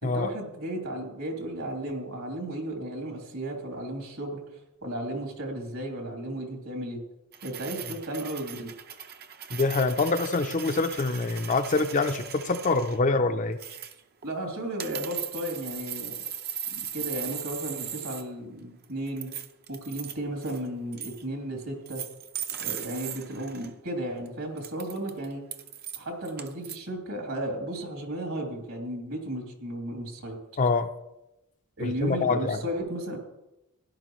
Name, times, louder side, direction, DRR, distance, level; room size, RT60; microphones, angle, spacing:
voice 1, 0.0-4.4 4.8-7.0 7.4-8.7 14.2-16.2 16.7-19.3 19.7-22.0 22.6-25.4 26.0-30.4 31.8-33.2, right 1 dB, 70° right, 0 dB, 3.0 m, -34 dB
sound 1, 7.3-13.0 13.6-14.3 14.8-18.2 18.6-20.2 20.4-20.7 20.9-21.2 21.9-23.7 24.3-24.4 24.6-26.8, right 9 dB, 45° right, 0.7 m, -38 dB
voice 2, 9.5-13.6 30.6-30.9 31.8-32.6, left 3 dB, 35° left, 8 dB, 0.6 m, -25 dB
16.5 x 11.0 x 3.1 m, 0.92 s
head